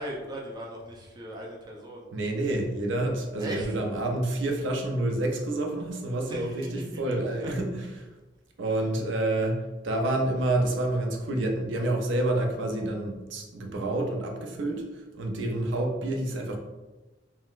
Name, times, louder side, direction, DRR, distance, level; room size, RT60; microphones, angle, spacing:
voice 1, 0.0-2.1 3.4-3.7 6.3-6.9 7.3-7.5 8.7-8.9, right 1 dB, 20° right, -3 dB, 0.4 m, -38 dB
voice 2, 2.1-8.1 8.6-9.6 9.8-16.6, right 1 dB, 85° right, 2 dB, 0.5 m, -28 dB
3.7 x 2.1 x 2.4 m, 1.2 s
head